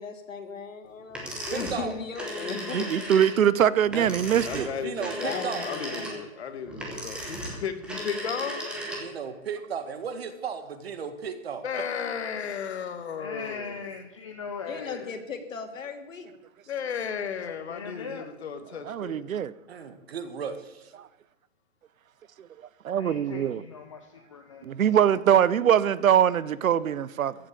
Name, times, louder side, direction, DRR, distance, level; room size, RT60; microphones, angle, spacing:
voice 1, 0.0-2.9 5.2-6.2 14.7-16.3, left 5 dB, 70° left, 2.8 m, -37 dB
sound 1, 1.1-9.3, equal, ahead, 1.0 m, -36 dB
voice 2, 1.5-1.9 3.9-5.6 9.0-11.7 19.7-20.9, right 6 dB, 50° right, 1.8 m, -35 dB
voice 3, 2.7-4.7 18.8-19.5 22.4-22.5 22.8-23.6 24.6-27.3, right 9 dB, 80° right, 0.9 m, -22 dB
voice 4, 4.5-8.6 11.6-13.8 16.7-19.3, left 7 dB, 50° left, 1.6 m, -35 dB
voice 5, 13.2-15.1 17.4-18.3 23.0-24.7, left 5 dB, 25° left, 0.6 m, -39 dB
15.0 x 7.8 x 8.5 m
hypercardioid pair, 170°, 40 cm